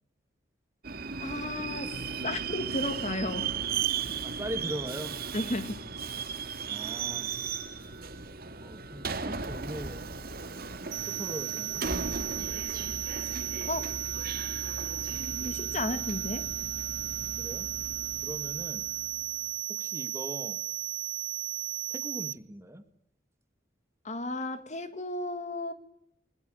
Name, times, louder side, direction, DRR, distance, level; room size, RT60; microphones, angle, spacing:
Subway metro underground, 0.8-19.3, right 5 dB, 55° right, 2.1 m, -36 dB
voice 1, 1.2-1.9 2.2-3.6 5.3-5.9 12.8-12.9 13.6-13.9 15.4-16.5 24.0-25.7, left 2 dB, 40° left, 11 dB, 1.9 m, -34 dB
voice 2, 4.2-5.4 6.7-7.3 8.1-8.3 8.6-10.0 11.1-12.3 17.4-17.7 18.2-18.9 19.7-20.6 21.9-22.9, equal, 15° right, 9 dB, 2.1 m, -41 dB
sound 1, 10.9-22.3, right 14 dB, 85° right, 1.0 m, -35 dB
29.0 x 21.0 x 6.6 m, 0.71 s
head